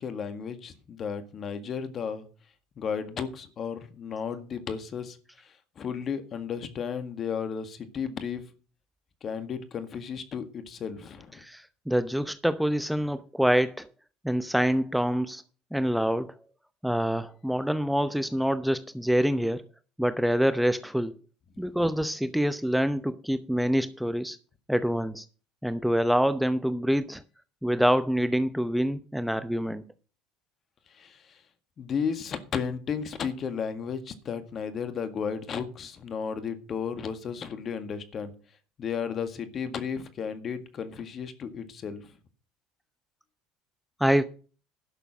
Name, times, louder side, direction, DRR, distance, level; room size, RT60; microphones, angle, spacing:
voice 1, 0.0-2.3 2.8-5.2 5.8-8.4 9.2-11.3 31.0-31.1 31.8-38.3 38.8-42.0, left 6 dB, 45° left, 1.8 m, -33 dB
voice 2, 11.4-13.9 14.2-15.4 15.7-16.3 16.8-19.6 20.0-21.1 21.6-24.4 24.7-25.3 25.6-27.2 27.6-29.8 44.0-44.2, equal, ahead, 0.7 m, -26 dB
11.5 x 6.8 x 6.4 m
hypercardioid pair, 65°, 0 cm